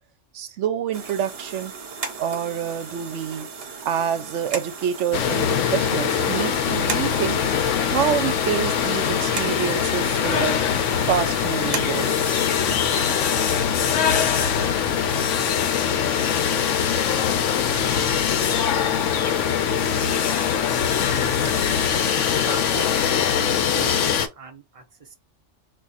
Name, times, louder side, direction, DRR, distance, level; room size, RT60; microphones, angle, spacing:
voice 1, 0.3-1.7 2.2-3.5 3.8-7.4 7.9-10.6 11.1-12.1, right 9 dB, 75° right, 0.9 m, -27 dB
sound 1, 0.9-13.6, right 5 dB, 55° right, 0.9 m, -36 dB
sound 2, 5.1-24.3, left 8 dB, 80° left, 0.9 m, -22 dB
Chirp tweet, 11.1-12.8 17.8-19.3, left 5 dB, 50° left, 0.7 m, -37 dB
voice 2, 22.2-25.1, right 5 dB, 35° right, 0.6 m, -39 dB
2.5 x 2.4 x 4.0 m
omnidirectional pair, 1.3 m